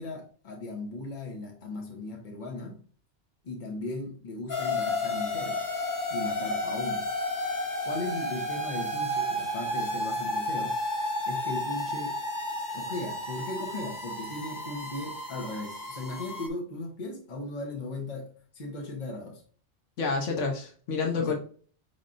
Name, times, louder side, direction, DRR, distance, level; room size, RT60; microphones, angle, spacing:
voice 1, 0.0-2.8 3.4-5.6 6.1-7.1 7.8-10.8 11.3-12.2 12.7-19.4 21.1-21.4, left 2 dB, 45° left, 1.2 m, -37 dB
sound 1, 4.5-16.5, left 1 dB, 20° left, 0.6 m, -32 dB
voice 2, 20.0-21.4, left 4 dB, 90° left, 1.3 m, -28 dB
5.6 x 3.5 x 2.5 m
omnidirectional pair, 1.2 m